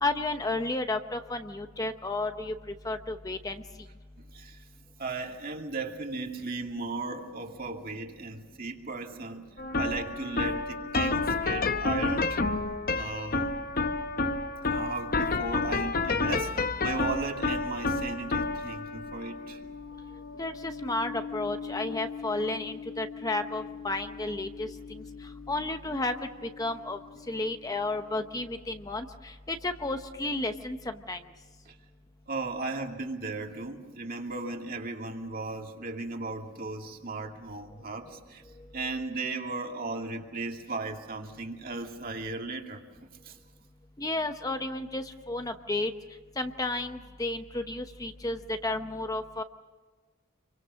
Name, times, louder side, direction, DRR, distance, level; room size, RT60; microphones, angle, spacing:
voice 1, 0.0-3.6 20.4-25.0 25.5-26.1 26.6-27.0 27.3-31.2 44.0-45.9 46.4-49.4, left 2 dB, 15° left, 7 dB, 0.9 m, -32 dB
voice 2, 4.2-4.6 5.0-9.5 9.8-12.4 12.9-13.5 14.7-19.6 31.7-31.8 32.3-38.4 38.7-42.8 43.2-43.4, right 3 dB, 40° right, 2 dB, 2.4 m, -36 dB
sound 1, 9.6-26.8, left 3 dB, 45° left, 0.8 m, -31 dB
28.0 x 24.5 x 6.3 m, 1.4 s
head